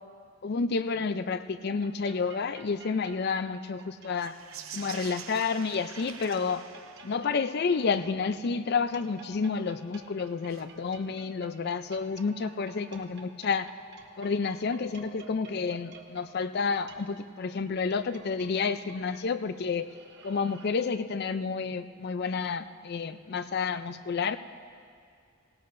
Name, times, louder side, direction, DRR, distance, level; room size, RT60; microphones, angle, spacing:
voice 1, 0.4-4.4 4.7-6.7 7.0-13.7 14.2-19.9 20.2-24.4, left 5 dB, 50° left, 12 dB, 0.4 m, -30 dB
sound 1, 1.8-20.7, right 4 dB, 50° right, 1.0 m, -53 dB
sound 2, 4.1-7.6 10.4-10.7, right 8 dB, 70° right, 0.8 m, -45 dB
19.0 x 17.5 x 2.6 m, 2.3 s
head